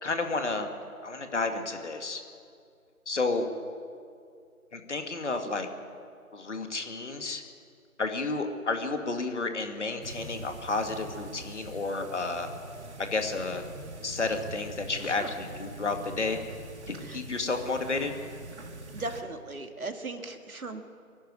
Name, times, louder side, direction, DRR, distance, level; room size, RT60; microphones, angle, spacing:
voice 1, 0.0-0.7 1.0-2.2 3.1-3.5 4.7-5.7 6.3-7.4 8.0-12.5 13.0-13.6 14.0-16.4 16.9-18.1, left 3 dB, 50° left, 5 dB, 2.2 m, -31 dB
sound 1, 10.0-19.2, right 2 dB, 50° right, 2.1 m, -44 dB
voice 2, 18.9-20.8, right 2 dB, 70° right, 6 dB, 2.2 m, -38 dB
24.5 x 11.5 x 9.6 m, 2.3 s
figure-of-eight pair, 160°, 44 cm